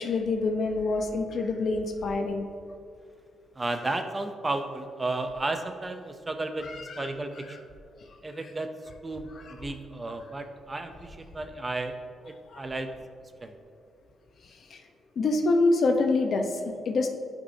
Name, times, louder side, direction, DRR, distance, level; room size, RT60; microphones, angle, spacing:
voice 1, 0.0-2.5 6.6-7.6 9.3-9.5 12.5-12.7 14.4-14.8 15.2-17.1, left 3 dB, 60° left, 4 dB, 0.8 m, -27 dB
voice 2, 3.6-7.6 8.2-8.7 9.0-12.0 12.3-12.9 13.4-13.5, right 2 dB, 25° right, 7 dB, 0.6 m, -33 dB
11.0 x 5.3 x 2.7 m, 2.2 s
cardioid pair, 80°, 0 cm